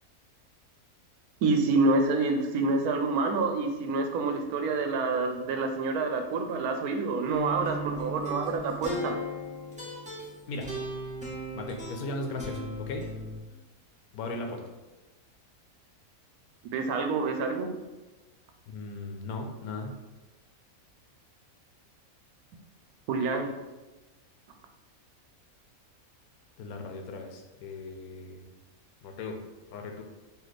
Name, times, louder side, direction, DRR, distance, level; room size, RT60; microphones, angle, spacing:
voice 1, 1.4-9.2 16.6-17.7 23.1-23.5, right 3 dB, 85° right, 5 dB, 1.1 m, -27 dB
sound 1, 7.3-13.4, equal, 5° right, 0.8 m, -37 dB
voice 2, 10.5-10.8 11.5-13.1 14.1-14.6 18.7-20.0 26.6-28.5 29.0-29.4 29.7-30.0, left 2 dB, 85° left, 4 dB, 1.1 m, -37 dB
3.2 x 2.8 x 4.0 m, 1.1 s
omnidirectional pair, 1.5 m